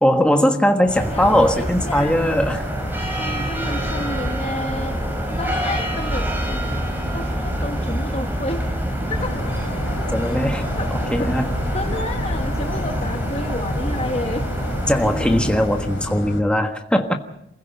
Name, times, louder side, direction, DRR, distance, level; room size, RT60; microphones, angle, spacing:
voice 1, 0.0-2.7 10.1-11.5 14.9-17.2, equal, 5° left, 4 dB, 1.4 m, -20 dB
sound 1, 0.8-16.3, equal, 10° right, 4.4 m, -26 dB
voice 2, 0.9-2.4 3.2-5.0 5.3-8.6 9.1-9.4 10.8-10.9 11.2-11.3 11.7-14.5, left 2 dB, 30° left, 6 dB, 1.2 m, -31 dB
sound 2, 9.2-16.4, left 1 dB, 85° left, 3.3 m, -31 dB
28.5 x 16.0 x 5.9 m, 0.81 s
head